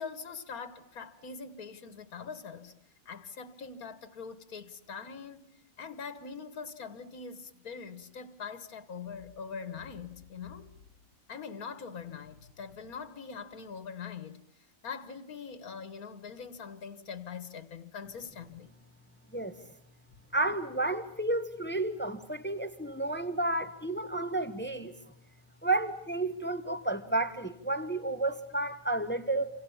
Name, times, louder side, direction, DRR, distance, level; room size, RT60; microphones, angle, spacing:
voice 1, 0.0-2.7 3.1-5.5 5.8-10.7 11.3-14.4 14.8-18.7, left 6 dB, 80° left, 2.0 m, -43 dB
voice 2, 20.3-24.9 25.6-29.5, right 2 dB, 10° left, 1.3 m, -31 dB
28.0 x 27.0 x 7.3 m
omnidirectional pair, 1.5 m